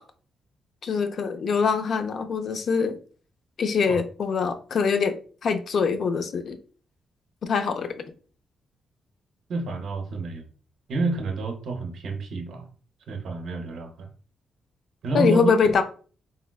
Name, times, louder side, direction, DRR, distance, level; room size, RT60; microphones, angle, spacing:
voice 1, 0.8-3.0 3.6-6.6 7.4-8.0 15.1-15.8, left 5 dB, 60° left, 0.4 m, -24 dB
voice 2, 9.5-10.5 10.9-12.7 13.1-14.1 15.0-15.6, right 2 dB, 70° right, 0.5 m, -29 dB
3.7 x 2.1 x 2.2 m
cardioid pair, 90°, 0 cm